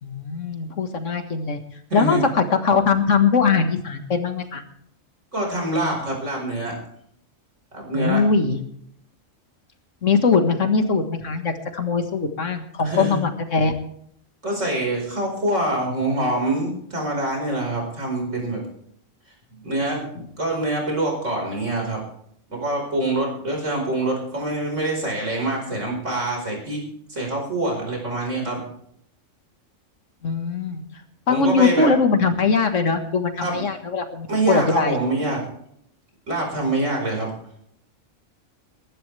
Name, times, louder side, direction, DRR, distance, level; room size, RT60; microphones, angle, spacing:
voice 1, 0.0-1.6 1.9-4.6 7.9-8.6 10.0-13.7 20.2-20.3 30.2-30.8 31.3-35.0, left 4 dB, 65° left, 7 dB, 2.0 m, -21 dB
voice 2, 1.9-2.2 5.3-6.7 7.7-8.2 12.8-13.2 14.4-18.6 19.6-20.0 20.4-22.0 22.5-26.8 27.1-28.6 31.3-31.9 33.4-33.6 34.3-35.4 36.3-37.3, right 2 dB, 65° right, 0 dB, 5.2 m, -25 dB
22.5 x 12.0 x 3.4 m, 0.70 s
omnidirectional pair, 1.4 m